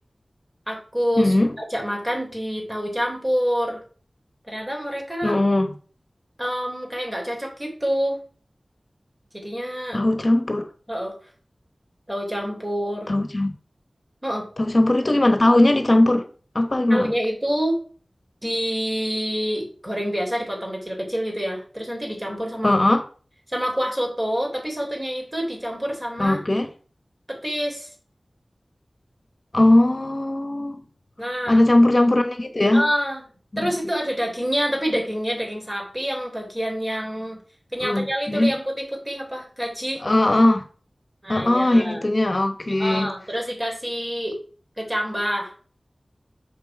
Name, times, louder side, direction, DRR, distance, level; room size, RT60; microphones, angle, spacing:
voice 1, 0.7-3.8 4.5-5.4 6.4-8.2 9.3-10.0 10.9-11.1 12.1-13.1 14.2-14.5 16.9-17.8 18.4-22.7 23.5-26.4 27.3-27.9 31.2-31.6 32.7-33.2 33.6-37.4 37.7-40.0 41.2-42.0 42.8-44.4 44.8-45.5, equal, 25° right, 0 dB, 3.4 m, -27 dB
voice 2, 1.2-1.5 5.2-5.8 9.9-10.6 13.1-13.5 14.6-16.2 16.5-17.1 22.6-23.0 26.2-26.7 29.5-30.8 31.5-32.9 33.5-33.7 37.8-38.5 40.0-40.6 41.3-43.1, left 1 dB, 45° left, 7 dB, 1.1 m, -19 dB
6.9 x 5.3 x 4.8 m, 0.41 s
wide cardioid pair, 50°, 0 cm